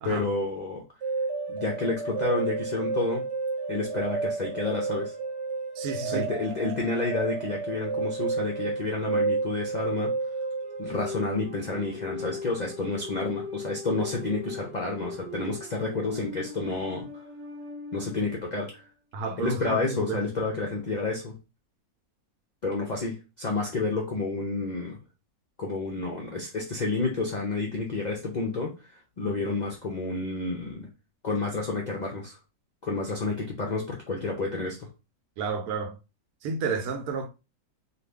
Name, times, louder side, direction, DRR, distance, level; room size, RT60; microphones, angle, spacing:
voice 1, 0.0-0.8 1.5-3.2 3.7-5.1 6.0-10.1 10.8-17.2 17.9-18.9 19.4-21.4 22.6-25.0 25.6-30.9 31.2-32.4 32.8-34.9, left 3 dB, 60° left, 0.4 m, -30 dB
sound 1, 1.0-18.4, right 3 dB, 55° right, 0.9 m, -33 dB
voice 2, 5.8-6.3 19.1-20.2 29.2-29.5 35.4-36.0 36.4-37.3, right 4 dB, 80° right, 1.1 m, -31 dB
2.7 x 2.5 x 3.3 m
omnidirectional pair, 1.6 m